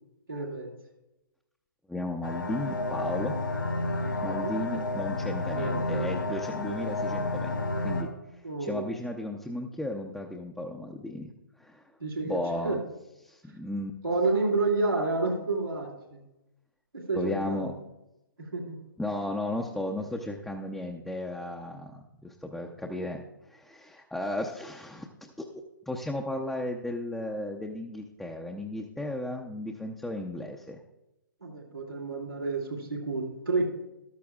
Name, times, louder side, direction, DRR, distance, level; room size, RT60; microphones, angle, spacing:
voice 1, 0.3-0.7 4.3-4.5 5.5-5.9 8.4-9.0 12.0-12.8 14.0-16.2 16.9-17.7 18.4-18.8 22.9-23.1 31.4-33.7, right 3 dB, 90° right, -3 dB, 2.4 m, -30 dB
voice 2, 1.9-3.4 4.2-8.1 8.6-11.3 11.6-11.8 12.2-12.8 13.2-14.0 17.1-17.7 19.0-30.8, left 1 dB, ahead, 0 dB, 0.6 m, -35 dB
sound 1, 2.2-8.0, left 2 dB, 80° left, 3.3 m, -31 dB
14.0 x 12.0 x 2.4 m, 0.96 s
figure-of-eight pair, 125°, 11 cm